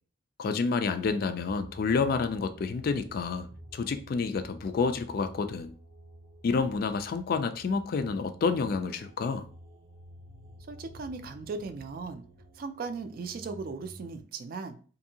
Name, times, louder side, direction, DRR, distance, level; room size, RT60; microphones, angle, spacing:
voice 1, 0.4-3.5 3.7-5.7 6.4-9.5, left 4 dB, 50° left, 0.3 m, -29 dB
sound 1, 0.8-14.2, equal, 85° right, 0.7 m, -51 dB
voice 2, 10.7-12.2 12.5-14.8, right 4 dB, 50° right, 0.3 m, -37 dB
2.6 x 2.6 x 2.7 m
head